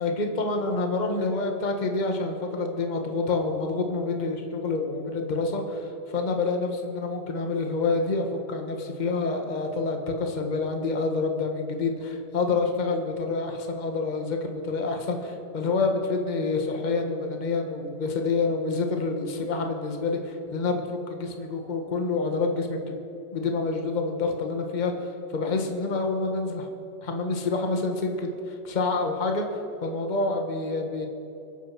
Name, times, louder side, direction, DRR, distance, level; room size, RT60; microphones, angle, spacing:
voice 1, 0.0-23.0 23.3-26.7 27.0-31.1, left 3 dB, 25° left, 3 dB, 1.4 m, -27 dB
24.0 x 9.3 x 5.8 m, 2.9 s
omnidirectional pair, 2.3 m